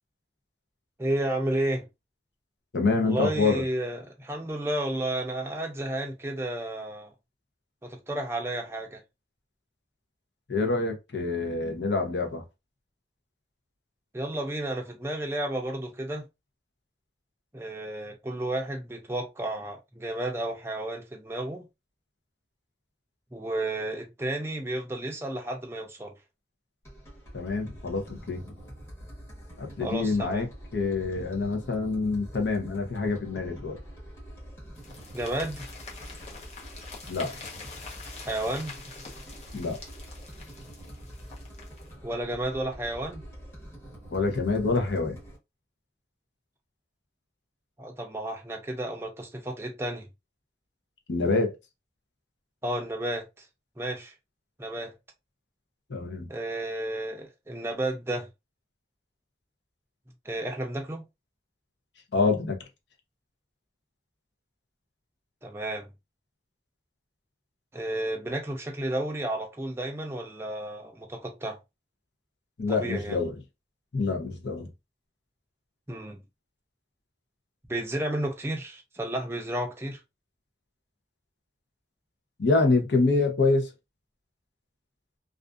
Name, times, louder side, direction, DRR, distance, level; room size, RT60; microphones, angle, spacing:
voice 1, 1.0-1.9 3.0-7.1 7.8-9.0 14.1-16.2 17.5-21.6 23.3-26.1 29.8-30.5 35.1-35.7 38.3-38.8 42.0-43.2 47.8-50.1 52.6-53.4 53.8-54.1 54.6-54.9 56.3-58.3 60.3-61.0 65.4-65.9 67.7-71.6 72.7-73.2 75.9-76.2 77.7-80.0, right 1 dB, 15° right, 0.5 m, -32 dB
voice 2, 2.7-3.6 10.5-12.4 27.3-28.6 29.6-30.5 30.7-33.8 37.1-37.3 39.5-39.8 44.1-45.2 51.1-51.6 55.9-56.3 62.1-62.6 72.6-73.4 73.9-74.7 82.4-83.7, left 3 dB, 85° left, 0.7 m, -26 dB
sound 1, 26.8-45.4, equal, 15° left, 1.0 m, -45 dB
sound 2, 34.8-41.9, left 4 dB, 40° left, 0.7 m, -45 dB
2.4 x 2.4 x 2.3 m
head